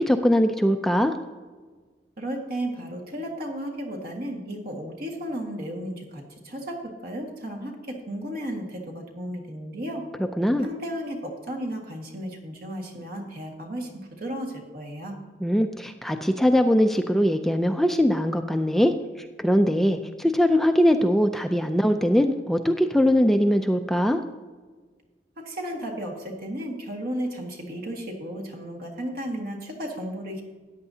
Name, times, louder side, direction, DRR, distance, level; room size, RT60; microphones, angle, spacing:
voice 1, 0.1-1.1 10.4-10.7 15.4-18.9 19.4-24.2, equal, ahead, 6 dB, 0.4 m, -21 dB
voice 2, 2.2-10.1 10.6-15.2 25.4-30.4, equal, 60° right, 1 dB, 1.8 m, -34 dB
13.5 x 9.7 x 2.8 m, 1.4 s
head